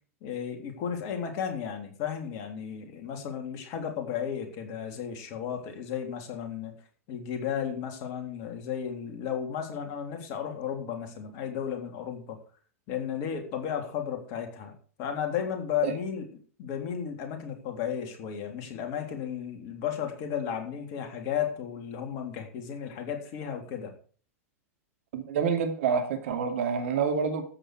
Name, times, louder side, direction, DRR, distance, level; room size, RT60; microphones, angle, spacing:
voice 1, 0.2-6.7 7.1-12.4 12.9-14.7 15.0-16.3 16.6-23.9, left 8 dB, 45° left, 5 dB, 3.5 m, -34 dB
voice 2, 25.1-27.4, right 6 dB, 60° right, 6 dB, 2.5 m, -27 dB
13.5 x 8.9 x 4.9 m, 0.42 s
figure-of-eight pair, 95°, 8 cm